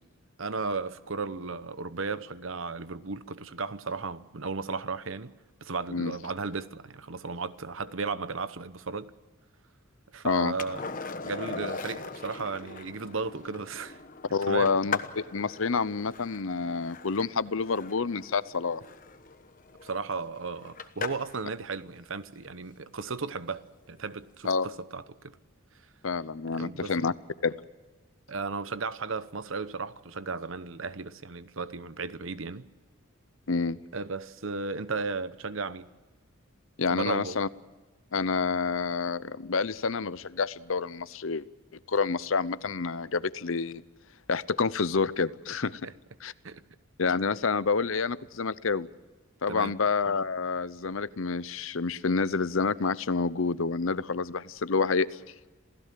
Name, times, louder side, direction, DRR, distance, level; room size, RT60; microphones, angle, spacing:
voice 1, 0.4-5.3 5.6-9.1 10.1-10.9 11.2-14.0 14.5-14.7 19.8-25.4 26.5-27.1 28.3-32.7 33.9-35.9 36.9-37.4 45.8-45.9 46.4-46.6 49.5-49.7, right 4 dB, 65° right, 0.9 m, -35 dB
voice 2, 10.2-10.5 14.3-18.8 24.4-24.7 26.0-27.1 27.4-27.6 33.5-33.8 36.8-37.5 38.1-41.5 41.9-43.8 44.3-45.8 46.2-46.3 47.0-48.9 49.4-55.1, left 4 dB, 70° left, 0.7 m, -28 dB
Skateboard, 10.6-21.4 24.0-24.1, left 5 dB, 40° left, 1.2 m, -40 dB
27.5 x 16.5 x 7.6 m
head